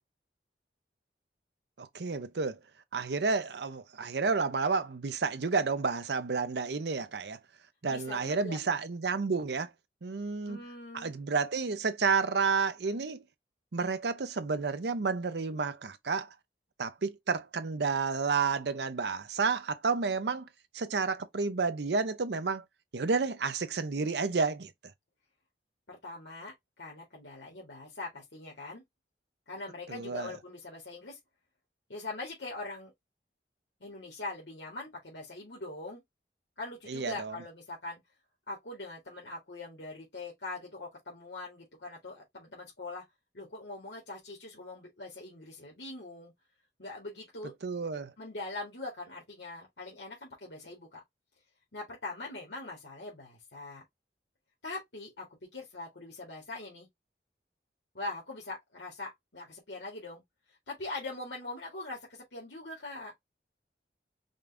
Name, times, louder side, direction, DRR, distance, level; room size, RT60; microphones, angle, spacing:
voice 1, 1.8-2.6 2.9-7.4 7.8-9.7 10.0-10.6 10.9-13.2 13.7-16.3 16.8-20.5 20.7-22.6 22.9-24.7 29.9-30.3 36.9-37.3 47.6-48.1, right 4 dB, 75° right, 0.6 m, -30 dB
voice 2, 7.9-8.6 10.5-11.1 25.9-28.8 29.5-31.2 31.9-32.9 33.8-36.0 36.6-38.0 38.5-43.0 43.3-46.3 46.8-47.5 48.2-51.0 51.7-53.8 54.6-55.3 55.5-56.9 57.9-60.2 60.7-63.1, left 2 dB, 90° left, 2.0 m, -42 dB
5.2 x 2.6 x 3.3 m
head